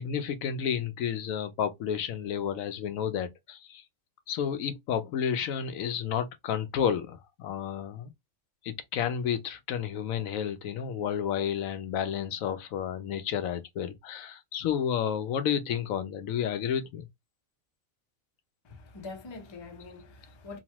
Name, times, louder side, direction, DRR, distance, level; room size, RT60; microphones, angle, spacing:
voice 1, 0.0-3.8 4.3-8.1 8.6-17.1, left 8 dB, 80° left, 1.0 m, -31 dB
voice 2, 18.6-20.6, left 3 dB, 40° left, 0.3 m, -44 dB
2.9 x 2.1 x 2.8 m
omnidirectional pair, 1.4 m